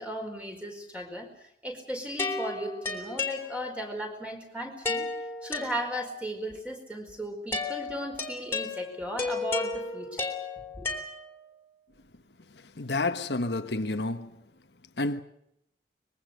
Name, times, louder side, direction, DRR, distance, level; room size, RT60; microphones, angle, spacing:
voice 1, 0.0-5.0 5.4-10.2 10.8-10.9, equal, 5° right, 4.6 m, -36 dB
sound 1, 2.2-4.0 4.8-6.3 7.5-11.6, left 3 dB, 15° left, 3.4 m, -34 dB
voice 2, 12.8-14.4 15.0-15.2, left 2 dB, 80° left, 1.3 m, -29 dB
24.5 x 22.0 x 6.7 m
head